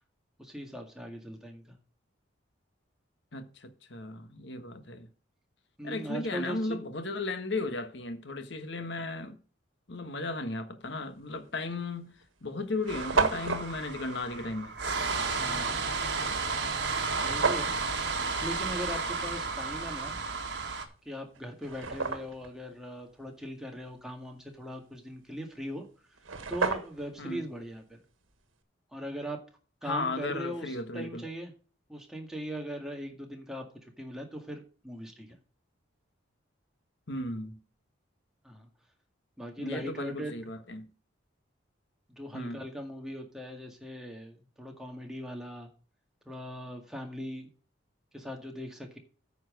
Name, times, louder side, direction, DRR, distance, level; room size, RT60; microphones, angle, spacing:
voice 1, 0.4-1.8 5.8-6.8 15.4-15.9 17.2-17.7 18.4-20.2 21.1-25.9 26.5-28.0 28.9-29.4 29.8-31.5 31.9-35.4 38.4-38.7 39.4-40.3 42.2-45.7 46.3-47.5 48.1-49.0, equal, 5° right, 1.9 m, -40 dB
voice 2, 3.3-5.1 5.8-9.4 9.9-14.7 27.2-27.5 29.8-31.2 37.1-37.6 39.6-40.9 42.3-42.6, left 2 dB, 60° left, 1.3 m, -35 dB
sound 1, 11.3-11.5 12.2-12.3 12.5-12.6 12.8-13.7 17.1-17.8 20.7-20.8 21.3-22.5 25.8-25.9 26.1-27.1, right 4 dB, 90° right, 1.4 m, -30 dB
sound 2, 12.9-20.8, right 4 dB, 55° right, 1.7 m, -32 dB
9.3 x 5.7 x 6.4 m
head